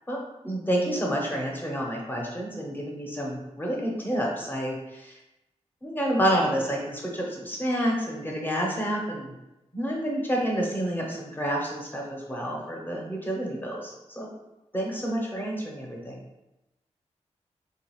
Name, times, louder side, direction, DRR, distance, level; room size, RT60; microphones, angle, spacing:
voice 1, 0.4-5.2 5.8-9.3 9.7-14.3 14.7-16.2, equal, 15° left, -2 dB, 0.8 m, -29 dB
3.7 x 2.4 x 3.0 m, 0.95 s
wide cardioid pair, 105°, 12 cm